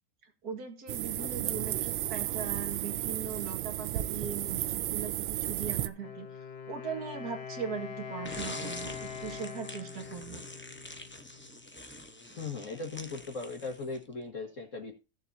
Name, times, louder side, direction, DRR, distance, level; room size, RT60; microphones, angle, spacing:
voice 1, 0.2-10.4, right 6 dB, 55° right, 4 dB, 2.5 m, -40 dB
sound 1, 0.9-5.9, right 13 dB, 90° right, 1.4 m, -33 dB
voice 2, 1.1-1.5 12.4-14.9, left 4 dB, 45° left, 1 dB, 1.8 m, -39 dB
Wind instrument woodwind instrument, 5.9-11.7, left 6 dB, 75° left, 2.0 m, -43 dB
sound 2, 8.2-14.1, left 1 dB, 10° left, 0.5 m, -45 dB
16.0 x 7.2 x 2.8 m, 0.30 s
omnidirectional pair, 2.0 m